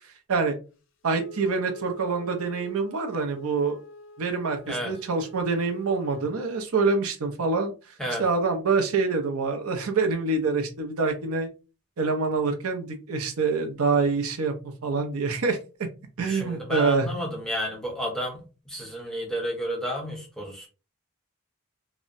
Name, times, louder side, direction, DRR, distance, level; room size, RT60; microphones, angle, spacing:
voice 1, 1.0-3.8 4.2-7.7 8.2-11.5 12.0-14.5 14.8-15.9 16.2-17.1, right 4 dB, 75° right, 5 dB, 0.6 m, -26 dB
Wind instrument woodwind instrument, 1.1-6.4, left 1 dB, 55° left, 0.4 m, -46 dB
voice 2, 16.3-20.7, equal, 5° left, -1 dB, 0.6 m, -31 dB
2.8 x 2.1 x 2.5 m, 0.32 s
head